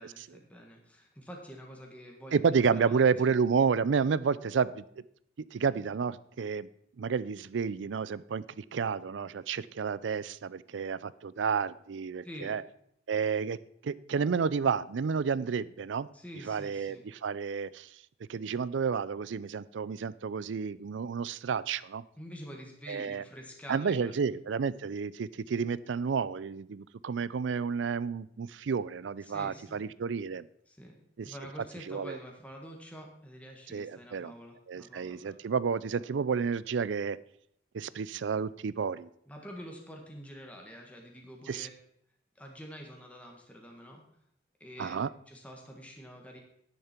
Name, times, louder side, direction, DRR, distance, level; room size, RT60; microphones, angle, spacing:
voice 1, 0.0-3.0 12.2-12.5 16.1-17.0 22.2-24.3 29.2-29.9 30.7-31.0 31.2-35.4 39.3-41.7 42.3-44.0 44.6-44.9 45.3-46.4, equal, 10° left, 0 dB, 1.6 m, -47 dB
voice 2, 2.3-4.8 5.5-6.7 7.0-12.6 13.1-13.6 13.8-16.1 16.5-17.9 18.3-22.0 22.9-23.2 23.7-30.5 31.2-31.3 31.9-32.2 33.7-34.3 34.7-37.2 37.7-39.1 41.5-41.7 44.8-45.1, right 6 dB, 70° right, 19 dB, 0.4 m, -30 dB
10.5 x 10.0 x 4.4 m, 0.68 s
head